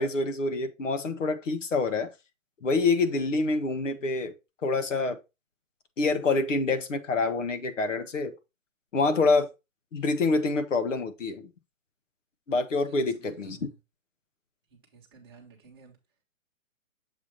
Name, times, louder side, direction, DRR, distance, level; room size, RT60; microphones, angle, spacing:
voice 1, 0.0-2.1 2.6-4.3 4.6-5.2 6.0-8.3 8.9-9.5 9.9-11.5 12.5-13.6, left 3 dB, 65° left, 1.3 m, -26 dB
voice 2, 12.8-13.8 14.7-16.0, right 5 dB, 20° right, 1.3 m, -54 dB
7.3 x 2.9 x 5.1 m
hypercardioid pair, 175°, 41 cm